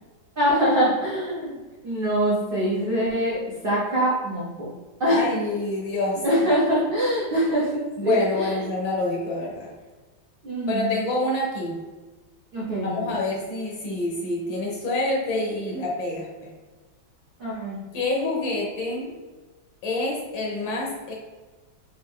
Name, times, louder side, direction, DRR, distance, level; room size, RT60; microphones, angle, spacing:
voice 1, 0.4-1.6 1.8-4.7 5.0-5.3 6.2-8.6 10.4-10.9 12.5-13.1 17.4-17.8, equal, 90° right, -8 dB, 0.4 m, -24 dB
voice 2, 5.1-6.4 8.0-9.7 10.7-11.8 12.8-16.5 17.9-19.1 19.8-21.1, left 2 dB, 70° left, -2 dB, 1.4 m, -27 dB
4.4 x 2.6 x 3.4 m, 1.3 s
omnidirectional pair, 2.3 m